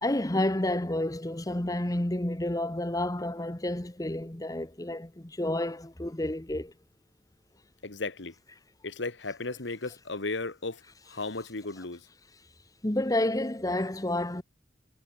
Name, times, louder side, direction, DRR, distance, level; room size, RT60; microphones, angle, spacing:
voice 1, 0.0-6.7 12.8-14.4, left 1 dB, 20° left, 1.1 m, -30 dB
voice 2, 7.8-8.3 8.8-10.8 11.1-12.1, left 3 dB, 90° left, 1.7 m, -35 dB
head